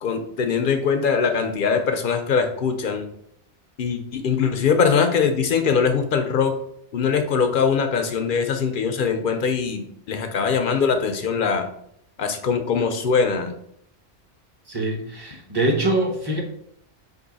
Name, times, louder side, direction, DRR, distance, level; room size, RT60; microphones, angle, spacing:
voice 1, 0.0-3.1 3.8-6.5 6.9-11.7 12.2-13.5, left 6 dB, 60° left, 6 dB, 0.6 m, -22 dB
voice 2, 14.7-16.4, right 1 dB, 25° right, 0 dB, 0.8 m, -23 dB
4.5 x 2.7 x 3.9 m, 0.70 s
omnidirectional pair, 1.2 m